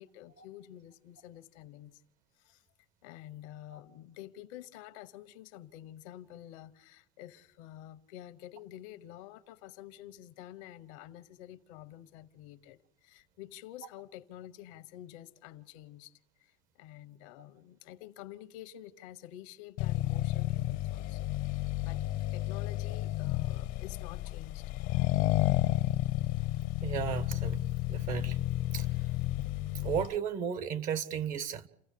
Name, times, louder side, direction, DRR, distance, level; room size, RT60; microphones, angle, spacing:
voice 1, 0.0-2.0 2.4-2.6 3.0-24.7, left 13 dB, 90° left, 1.1 m, -49 dB
Accelerating revving vroom, 19.8-30.2, left 16 dB, 70° left, 0.8 m, -31 dB
voice 2, 26.8-27.6 27.9-28.4 28.7-28.9 29.7-31.7, right 8 dB, 60° right, 1.7 m, -34 dB
29.5 x 15.5 x 8.5 m
supercardioid pair, 115°, 16 cm